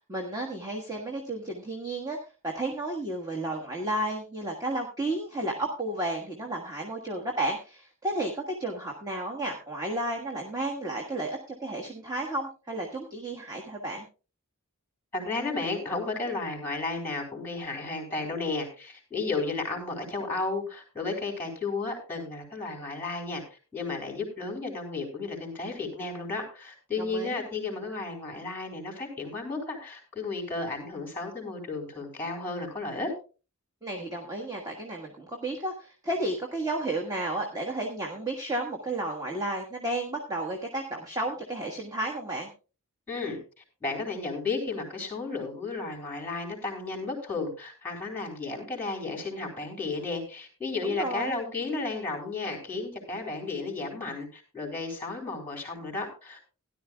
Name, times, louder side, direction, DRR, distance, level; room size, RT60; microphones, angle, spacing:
voice 1, 0.1-2.2 2.4-14.1 27.0-27.4 33.8-42.5 50.8-51.4, right 1 dB, 15° right, 0 dB, 1.4 m, -32 dB
voice 2, 15.1-23.4 23.7-33.1 43.1-43.4 43.8-56.5, left 3 dB, 10° left, 2 dB, 3.9 m, -33 dB
17.0 x 11.0 x 2.3 m, 0.33 s
head